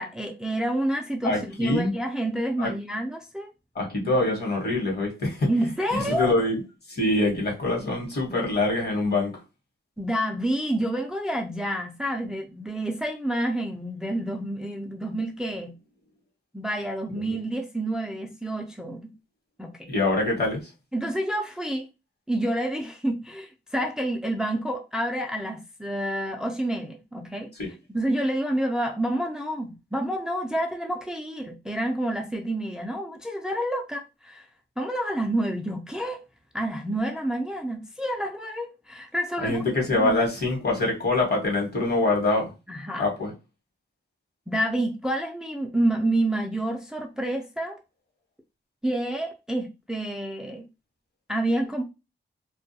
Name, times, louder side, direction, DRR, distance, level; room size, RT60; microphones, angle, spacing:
voice 1, 0.0-3.5 4.0-4.1 5.5-6.4 10.0-15.8 16.5-19.1 19.6-19.9 20.9-21.9 22.3-27.5 27.9-34.5 34.8-36.2 36.5-39.6 39.9-40.2 42.7-43.1 44.5-47.8 48.8-50.7 51.3-51.8, right 1 dB, 5° right, 0.4 m, -28 dB
voice 2, 1.2-1.9 2.6-2.7 3.7-5.5 5.9-6.6 6.9-9.4 19.9-20.7 27.6-27.7 39.4-42.5 43.0-43.3, left 2 dB, 55° left, 1.2 m, -24 dB
2.3 x 2.1 x 2.7 m
wide cardioid pair, 90°, 19 cm